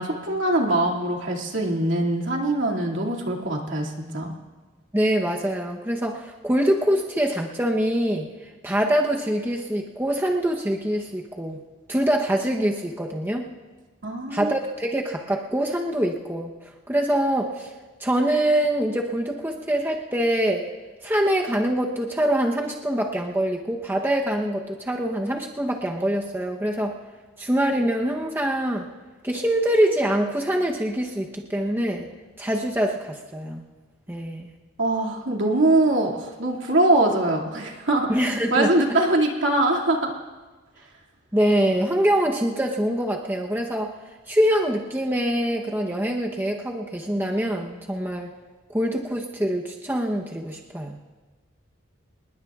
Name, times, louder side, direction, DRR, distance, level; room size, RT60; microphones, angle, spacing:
voice 1, 0.0-4.3 14.0-14.5 34.8-38.1 38.5-40.1, right 1 dB, 70° right, -1 dB, 2.4 m, -22 dB
voice 2, 4.9-8.3 8.6-11.6 11.9-13.4 14.3-16.5 16.9-17.7 18.0-20.6 21.0-27.0 27.4-28.9 29.2-32.1 32.4-33.6 34.1-34.5 38.1-38.7 41.3-43.9 44.3-48.3 48.7-51.0, right 1 dB, 10° right, 0 dB, 0.9 m, -24 dB
27.0 x 20.5 x 2.4 m, 1.3 s
head